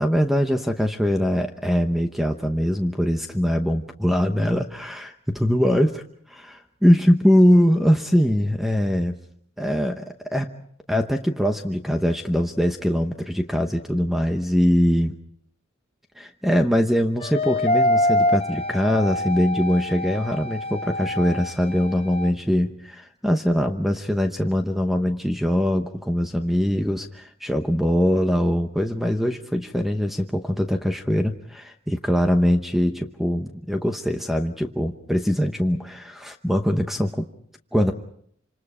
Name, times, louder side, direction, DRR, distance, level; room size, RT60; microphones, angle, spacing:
voice 1, 0.0-5.1 5.4-5.9 6.3-9.2 9.6-10.5 10.9-15.2 16.2-37.3 37.7-37.9, equal, ahead, 5 dB, 0.9 m, -22 dB
sound 1, 17.2-22.3, left 1 dB, 30° left, 1.0 m, -25 dB
27.5 x 26.5 x 4.9 m, 0.66 s
head